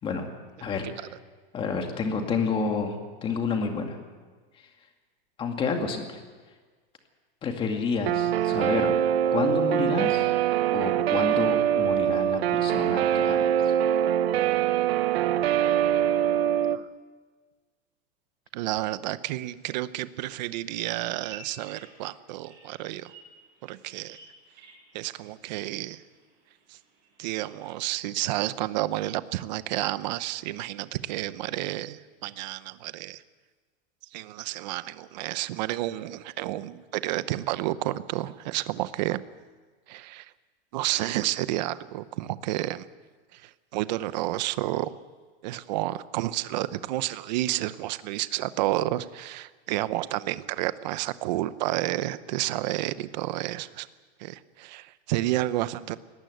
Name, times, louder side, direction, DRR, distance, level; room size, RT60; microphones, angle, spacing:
voice 1, 0.6-1.1 1.5-4.0 4.5-4.7 5.4-6.2 7.4-8.9 9.3-10.3 10.7-13.7, left 5 dB, 15° left, 4 dB, 2.1 m, -29 dB
Guitar, 8.1-16.8, right 10 dB, 75° right, 1.1 m, -23 dB
voice 2, 18.5-23.1 23.6-24.2 24.9-26.0 26.7-26.8 27.2-33.2 34.1-39.2 39.9-40.3 40.7-42.8 43.3-44.9 45.4-53.9 54.2-56.0, right 16 dB, 45° right, 15 dB, 0.8 m, -30 dB
Bird vocalization bird call bird song, 21.1-27.4, right 4 dB, 30° right, 7.7 m, -53 dB
23.0 x 19.0 x 8.0 m, 1.4 s
supercardioid pair, 175°, 31 cm